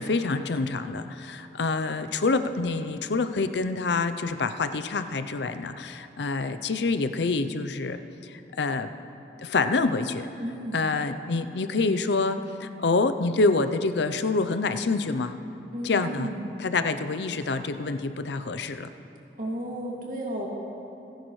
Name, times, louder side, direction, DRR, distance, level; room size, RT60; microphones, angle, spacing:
voice 1, 0.0-8.9 9.4-10.3 10.7-15.3 15.8-16.3 16.6-18.9, left 3 dB, 80° left, 10 dB, 0.6 m, -27 dB
voice 2, 10.4-10.9 15.7-16.6 19.4-20.5, right 1 dB, 50° right, -3 dB, 2.3 m, -33 dB
27.5 x 10.5 x 3.2 m, 2.9 s
head